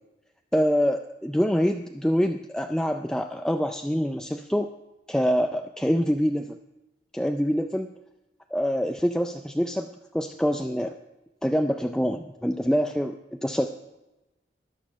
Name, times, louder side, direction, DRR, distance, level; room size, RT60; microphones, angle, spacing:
voice 1, 0.5-4.7 5.1-6.6 7.1-7.9 8.5-9.9 10.1-10.9 11.4-13.7, equal, 5° left, 5 dB, 0.4 m, -25 dB
13.0 x 11.0 x 5.2 m, 1.0 s
head